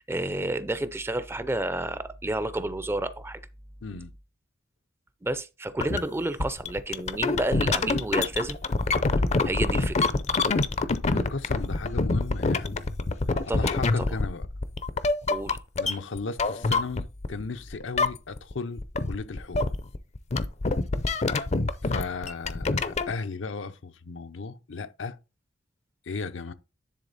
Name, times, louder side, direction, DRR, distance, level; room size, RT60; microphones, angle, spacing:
voice 1, 0.0-3.4 5.2-8.6 9.4-10.1 13.5-14.1 15.3-15.6, right 2 dB, 15° right, 0.4 m, -30 dB
voice 2, 3.8-4.1 11.1-12.8 13.5-14.4 15.8-19.7 21.8-25.2 26.1-26.5, left 4 dB, 85° left, 0.7 m, -35 dB
sound 1, 5.8-6.0 6.4-17.4 17.7-18.5 18.8-23.1, left 3 dB, 35° left, 0.5 m, -26 dB
10.0 x 3.6 x 4.0 m
head